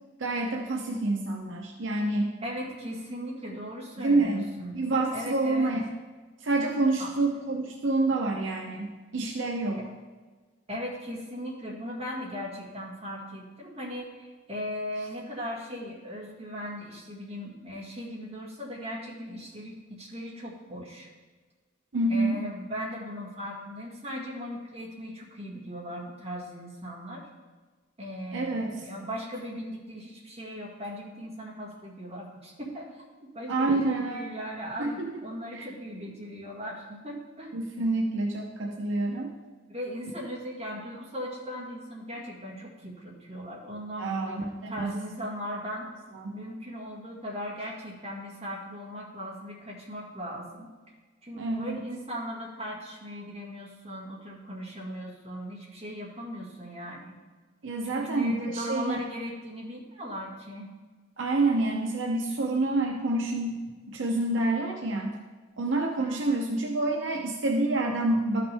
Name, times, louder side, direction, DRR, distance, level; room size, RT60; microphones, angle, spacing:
voice 1, 0.2-2.3 4.0-5.8 6.4-9.8 21.9-22.4 28.3-28.8 33.5-34.3 34.8-35.1 35.5-35.7 37.5-39.3 44.0-44.9 46.1-46.4 51.4-51.8 57.6-59.0 61.2-63.6 63.9-65.1 65.6-68.4, right 2 dB, 70° right, 0 dB, 0.8 m, -28 dB
voice 2, 2.4-4.8 5.1-5.7 7.0-7.1 9.8-9.9 10.7-21.1 22.1-27.3 28.0-37.5 39.7-45.9 46.3-50.7 51.2-57.1 57.8-60.7 66.0-66.5, equal, 30° right, -4 dB, 2.0 m, -38 dB
12.5 x 5.8 x 3.5 m, 1.4 s
head